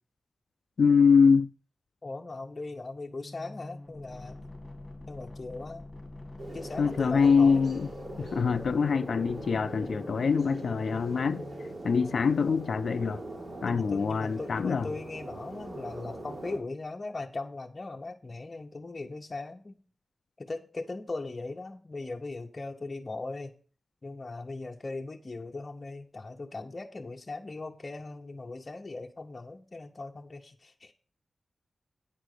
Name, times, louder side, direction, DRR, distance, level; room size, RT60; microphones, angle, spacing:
voice 1, 0.8-1.5 6.8-7.9 8.2-11.4 11.8-13.2 13.6-14.9, left 5 dB, 75° left, 0.3 m, -24 dB
voice 2, 2.0-4.4 5.1-5.9 6.5-7.7 13.6-19.8 20.4-23.5 24.0-30.9, left 3 dB, 35° left, 0.7 m, -39 dB
sound 1, 3.1-11.7, left 2 dB, 20° left, 2.2 m, -45 dB
sound 2, 6.4-16.6, right 1 dB, 60° right, 3.2 m, -41 dB
9.1 x 5.0 x 6.5 m
wide cardioid pair, 115°, 0 cm